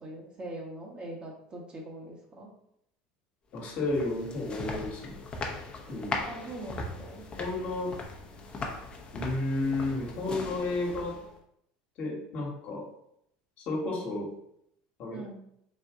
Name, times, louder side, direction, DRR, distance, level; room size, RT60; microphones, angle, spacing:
voice 1, 0.0-2.5 6.2-7.2 15.1-15.4, right 1 dB, 30° right, -1 dB, 1.3 m, -42 dB
voice 2, 3.5-5.2 5.9-6.2 7.4-7.9 9.1-11.2 12.0-12.9 13.7-14.3 15.0-15.2, left 2 dB, 55° left, -2 dB, 1.5 m, -32 dB
sound 1, 3.6-11.4, left 2 dB, 30° left, 0.9 m, -39 dB
4.3 x 2.5 x 3.7 m, 0.73 s
hypercardioid pair, 90°, 3 cm